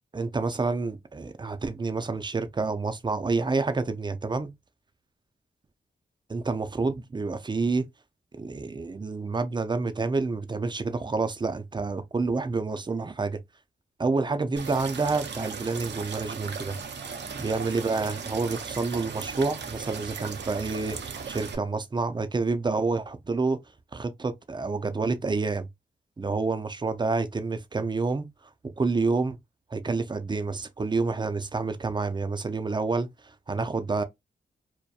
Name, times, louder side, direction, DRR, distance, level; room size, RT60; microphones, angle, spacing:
voice 1, 0.1-4.5 6.3-7.9 8.4-13.4 14.0-16.8 17.4-23.6 23.9-25.7 26.2-28.3 28.8-29.4 29.7-34.0, right 3 dB, 25° right, 0.5 m, -28 dB
sound 1, 14.6-21.6, right 5 dB, 65° right, 0.5 m, -37 dB
2.8 x 2.2 x 2.2 m
supercardioid pair, 45°, 19 cm